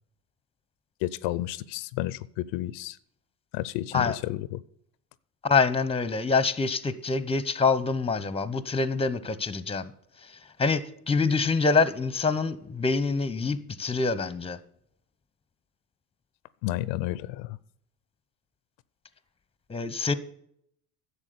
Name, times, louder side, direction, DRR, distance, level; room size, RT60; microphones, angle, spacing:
voice 1, 1.0-3.0 3.5-4.6 16.6-17.6, left 15 dB, 70° left, 18 dB, 0.6 m, -31 dB
voice 2, 5.4-9.9 10.6-14.6 19.7-20.1, left 4 dB, 10° left, 16 dB, 0.9 m, -25 dB
11.0 x 7.3 x 6.9 m, 0.71 s
hypercardioid pair, 70°, 46 cm